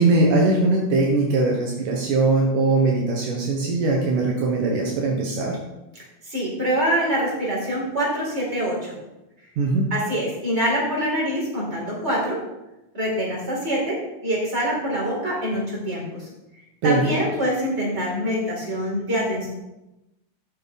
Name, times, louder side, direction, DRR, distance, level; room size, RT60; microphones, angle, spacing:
voice 1, 0.0-5.6 9.6-9.9 16.8-17.2, right 3 dB, 70° right, -1 dB, 2.8 m, -21 dB
voice 2, 6.2-9.0 9.9-12.4 12.9-16.3 16.8-19.5, equal, 20° right, -4 dB, 4.7 m, -25 dB
13.0 x 9.5 x 4.1 m, 0.96 s
omnidirectional pair, 3.9 m